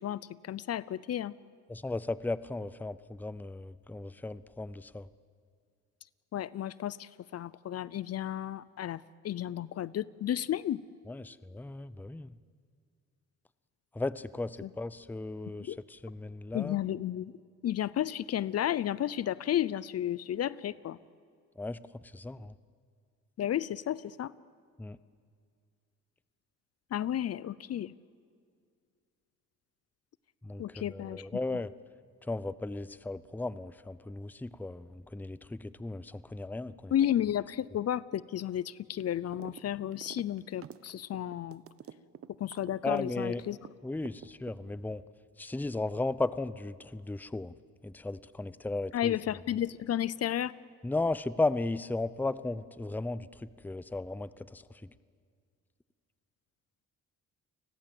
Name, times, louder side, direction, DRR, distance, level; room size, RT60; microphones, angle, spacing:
voice 1, 0.0-1.3 6.3-10.8 14.6-14.7 15.7-15.8 16.5-17.3 17.6-21.0 23.4-24.3 26.9-27.9 30.6-31.3 36.9-41.6 42.4-43.6 48.9-50.5, left 11 dB, 55° left, 19 dB, 0.6 m, -32 dB
voice 2, 1.7-5.1 11.1-12.3 13.9-16.8 21.6-21.8 22.1-22.5 24.8-25.0 30.4-31.7 32.3-36.9 42.8-43.4 43.8-45.0 45.4-47.5 47.8-49.2 50.8-54.9, left 2 dB, 5° left, 16 dB, 0.6 m, -35 dB
sound 1, 39.3-39.6 39.9-43.7 44.1-44.9, right 9 dB, 50° right, 0.9 m, -47 dB
29.5 x 20.5 x 7.8 m, 2.1 s
cardioid pair, 90°, 30 cm